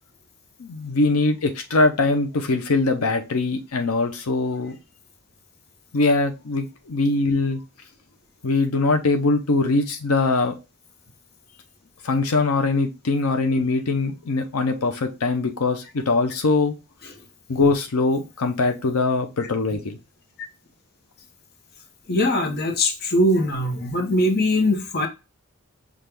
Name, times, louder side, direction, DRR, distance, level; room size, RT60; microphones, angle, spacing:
voice 1, 0.6-4.8 5.9-7.6 8.4-10.6 12.0-16.7 17.5-20.0, left 3 dB, 85° left, 0.6 m, -22 dB
voice 2, 22.1-25.1, left 1 dB, 45° left, 0.8 m, -21 dB
5.8 x 2.4 x 3.4 m
head